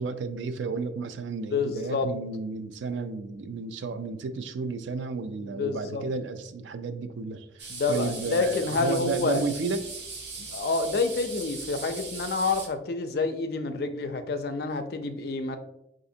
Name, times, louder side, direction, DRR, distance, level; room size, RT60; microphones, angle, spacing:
voice 1, 0.0-9.8, right 4 dB, 85° right, 10 dB, 0.4 m, -32 dB
voice 2, 1.5-2.1 5.4-6.0 7.7-9.4 10.4-15.6, left 3 dB, 55° left, 8 dB, 0.4 m, -28 dB
sound 1, 7.6-12.7, right 4 dB, 65° right, 0.7 m, -39 dB
4.9 x 2.5 x 2.7 m, 0.83 s
head